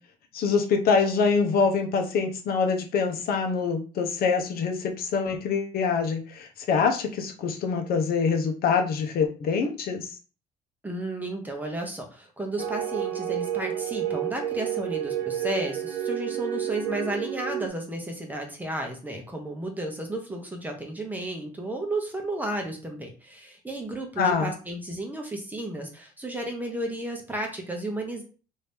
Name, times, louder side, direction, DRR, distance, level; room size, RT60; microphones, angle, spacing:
voice 1, 0.3-10.1 24.2-24.5, left 5 dB, 65° left, 4 dB, 0.8 m, -25 dB
voice 2, 10.8-28.2, right 1 dB, 10° right, 2 dB, 0.9 m, -33 dB
sound 1, 12.6-17.7, right 10 dB, 85° right, 0.5 m, -30 dB
3.0 x 2.7 x 3.4 m, 0.36 s
cardioid pair, 110°, 17 cm